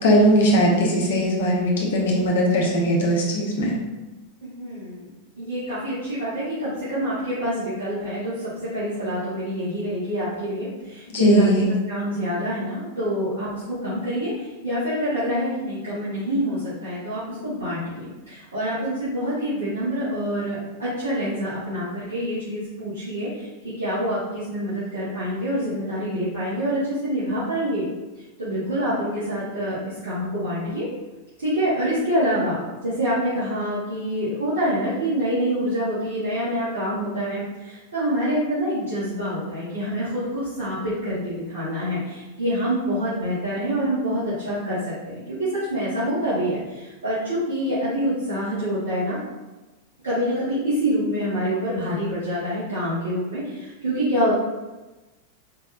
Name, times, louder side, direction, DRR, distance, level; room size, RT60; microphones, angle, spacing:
voice 1, 0.0-3.7 11.1-11.6, equal, 55° left, -3 dB, 1.1 m, -19 dB
voice 2, 4.4-5.1 5.4-8.3 8.6-11.5 11.9-27.8 28.4-30.9 31.4-49.2 50.0-54.4, equal, 70° right, -13 dB, 1.5 m, -26 dB
4.6 x 3.3 x 2.5 m, 1.1 s
figure-of-eight pair, 90°, 0 cm